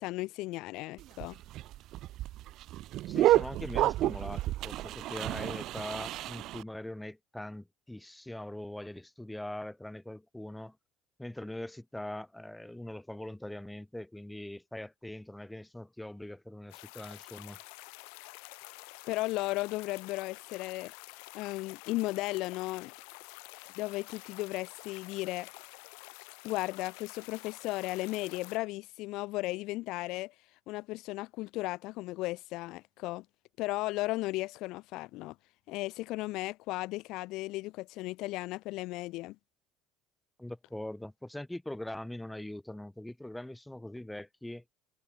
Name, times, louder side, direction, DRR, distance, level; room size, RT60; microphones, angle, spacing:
voice 1, 0.0-1.4 19.1-20.9 21.3-22.9 23.8-25.6 26.4-30.3 30.7-33.2 33.6-35.3 35.7-39.4, left 20 dB, 65° left, 0.6 m, -35 dB
sound 1, 1.0-6.6, right 15 dB, 55° right, 0.7 m, -30 dB
voice 2, 3.1-10.8 11.2-17.6 40.4-44.6, left 1 dB, 5° left, 1.5 m, -42 dB
sound 2, 16.7-28.6, left 40 dB or more, 85° left, 2.3 m, -49 dB
cardioid pair, 130°, 0 cm